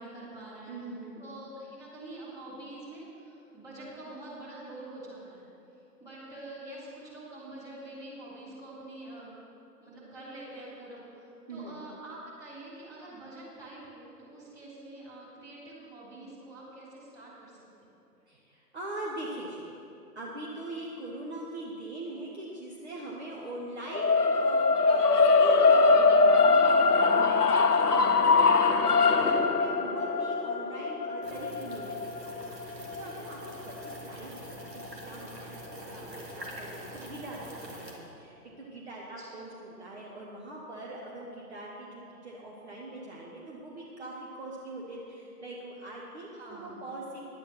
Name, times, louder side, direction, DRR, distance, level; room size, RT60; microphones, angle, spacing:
voice 1, 0.0-0.8 1.2-5.5 6.0-9.3 9.8-17.6 39.2-39.4 46.3-46.9, right 1 dB, 5° right, -10 dB, 3.2 m, -45 dB
voice 2, 0.7-1.2 11.5-11.8 18.3-19.7 20.1-32.0 32.2-47.2, right 1 dB, 40° right, -4 dB, 1.6 m, -42 dB
sound 1, 23.9-34.1, left 4 dB, 70° left, 0.8 m, -23 dB
sound 2, 31.2-38.0, right 1 dB, 85° right, 2.4 m, -44 dB
11.0 x 8.8 x 5.9 m, 2.7 s
figure-of-eight pair, 135°, 48 cm